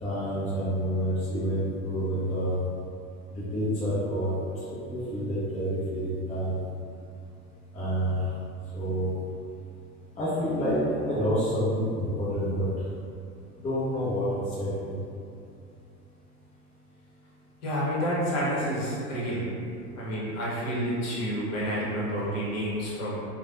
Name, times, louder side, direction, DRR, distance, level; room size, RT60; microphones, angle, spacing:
voice 1, 0.0-2.5 3.3-4.3 4.7-6.5 7.7-8.2 8.7-9.1 10.2-12.7 13.6-14.3 14.6-14.9, equal, 15° left, -11 dB, 0.6 m, -28 dB
voice 2, 17.6-19.5 19.9-23.2, equal, 35° left, -7 dB, 1.0 m, -29 dB
3.2 x 2.2 x 2.5 m, 2.5 s
hypercardioid pair, 90°, 45 cm